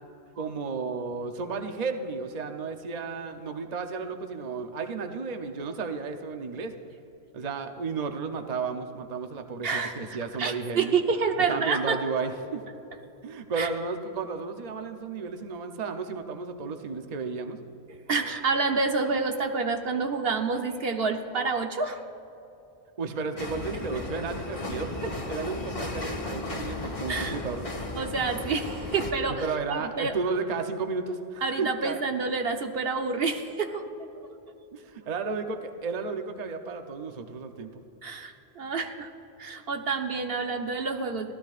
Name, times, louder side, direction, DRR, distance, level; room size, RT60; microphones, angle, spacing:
voice 1, 0.4-6.8 7.3-10.9 11.4-12.6 13.2-17.6 23.0-27.7 29.3-32.0 34.7-37.8, right 4 dB, 45° right, 6 dB, 0.8 m, -33 dB
voice 2, 9.6-10.0 10.4-12.0 13.6-13.7 18.1-22.0 27.1-27.4 28.0-30.1 31.4-33.9 34.2-34.4 38.0-39.1 39.4-41.3, right 4 dB, 65° right, 5 dB, 1.1 m, -28 dB
sound 1, 23.4-29.1, left 2 dB, 35° left, 1.2 m, -35 dB
25.0 x 15.5 x 2.5 m, 3.0 s
omnidirectional pair, 1.1 m